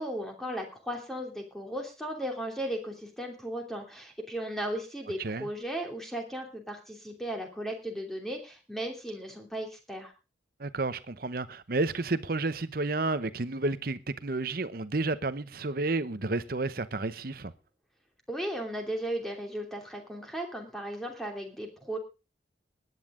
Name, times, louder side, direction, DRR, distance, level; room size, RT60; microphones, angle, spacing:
voice 1, 0.0-10.1 18.3-22.0, right 1 dB, ahead, 2.9 m, -36 dB
voice 2, 10.6-17.5, right 2 dB, 50° right, 0.8 m, -31 dB
19.5 x 9.5 x 3.8 m
head